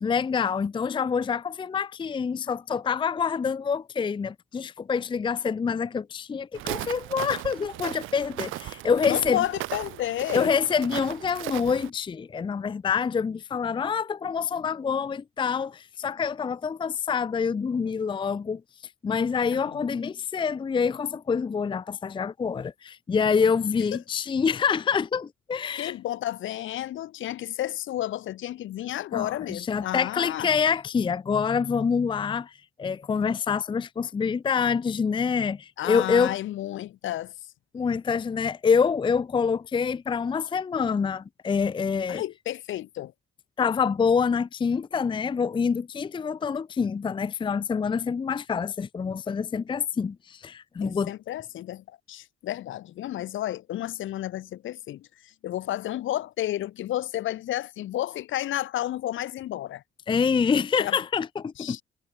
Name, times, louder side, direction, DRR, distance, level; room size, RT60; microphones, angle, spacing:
voice 1, 0.0-9.4 10.3-18.6 19.0-25.9 29.1-36.3 37.7-42.2 43.6-51.1 60.1-61.8, left 6 dB, 25° left, 0.5 m, -26 dB
Walk footsteps, 6.5-11.9, right 17 dB, 90° right, 0.7 m, -37 dB
voice 2, 9.1-10.5 19.5-19.9 23.9-24.0 25.8-30.5 35.8-37.3 42.1-43.1 50.8-59.8 60.8-61.0 61.6-61.8, left 13 dB, 80° left, 2.5 m, -32 dB
cardioid pair, 90°, 20 cm